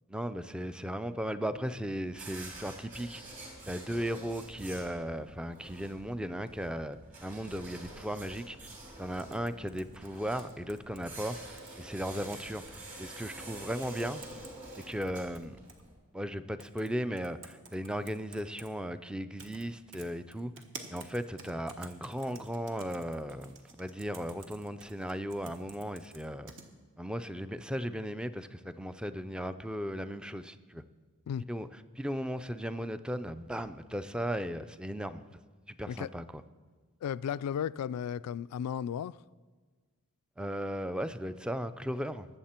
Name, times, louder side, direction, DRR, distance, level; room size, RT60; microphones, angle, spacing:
voice 1, 0.1-3.2 3.7-8.6 9.0-14.4 14.8-15.6 16.1-20.5 20.9-26.5 27.0-30.8 31.5-35.2 35.7-36.4 40.4-42.3, equal, 5° right, 12 dB, 0.4 m, -36 dB
sound 1, 2.1-15.9, right 2 dB, 35° right, 3.0 m, -48 dB
sound 2, 9.2-11.7 12.1-12.8 13.2-13.3 13.8-14.5 14.8-15.8 16.6-16.9 17.2-18.7 19.4-19.6 19.9-26.6, right 4 dB, 60° right, 1.2 m, -51 dB
voice 2, 37.0-39.1, left 8 dB, 90° left, 17 dB, 0.3 m, -34 dB
20.0 x 7.3 x 4.4 m, 1.4 s
head